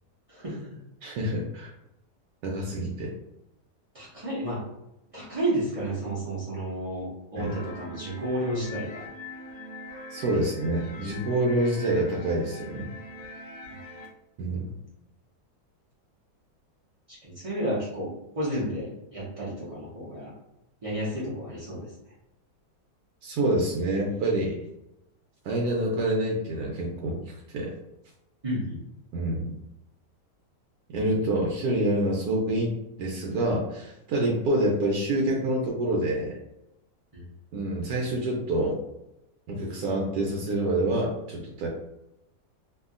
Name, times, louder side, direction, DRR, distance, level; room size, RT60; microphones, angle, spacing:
voice 1, 0.3-0.8 3.9-4.6 5.1-9.0 13.7-13.8 17.1-18.1 18.4-20.3 20.8-21.9 28.4-28.8 37.1-37.2, right 1 dB, 55° right, -8 dB, 0.3 m, -31 dB
voice 2, 1.0-1.7 2.4-3.1 7.4-7.5 10.1-12.9 14.4-14.7 23.2-24.6 25.4-27.7 29.1-29.5 30.9-36.4 37.5-38.8 39.5-41.7, right 1 dB, 75° right, -2 dB, 1.0 m, -27 dB
sound 1, 7.4-14.1, left 1 dB, 65° left, 1.0 m, -42 dB
2.7 x 2.7 x 2.4 m, 0.88 s
omnidirectional pair, 1.8 m